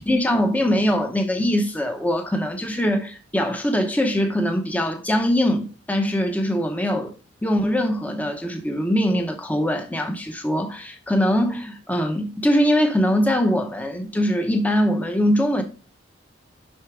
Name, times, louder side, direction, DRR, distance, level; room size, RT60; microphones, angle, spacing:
voice 1, 0.0-7.2 7.4-15.6, equal, 10° left, 0.7 m, -22 dB
6.4 x 5.7 x 4.8 m
head